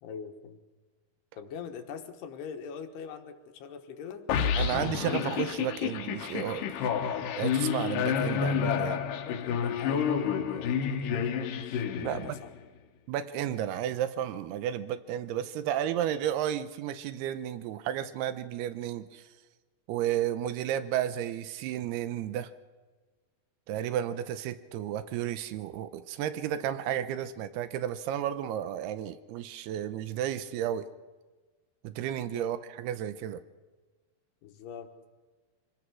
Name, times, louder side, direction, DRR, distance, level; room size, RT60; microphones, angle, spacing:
voice 1, 0.0-0.6 1.4-4.2 9.2-12.5 32.2-32.5 34.4-34.9, left 6 dB, 85° left, 5 dB, 3.4 m, -43 dB
sound 1, 4.3-12.6, left 7 dB, 70° left, 2.3 m, -29 dB
voice 2, 4.5-6.9 7.4-9.0 12.0-12.4 13.1-19.2 19.9-22.5 23.7-30.9 31.8-33.4, right 11 dB, 80° right, 12 dB, 2.8 m, -32 dB
25.0 x 18.0 x 6.2 m, 1.3 s
omnidirectional pair, 4.6 m